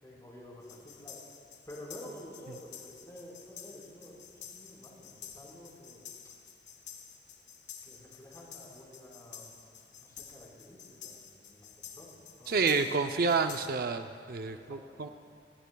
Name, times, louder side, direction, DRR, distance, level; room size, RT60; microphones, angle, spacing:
voice 1, 0.0-1.2 1.7-6.0 7.8-9.6 9.9-12.8 13.0-13.6 14.5-15.1, left 1 dB, 20° left, -4 dB, 4.4 m, -50 dB
sound 1, 0.6-13.7, left 8 dB, 85° left, 1.3 m, -50 dB
voice 2, 12.5-15.1, right 4 dB, 55° right, 7 dB, 0.5 m, -29 dB
26.0 x 18.5 x 2.3 m, 2.2 s
head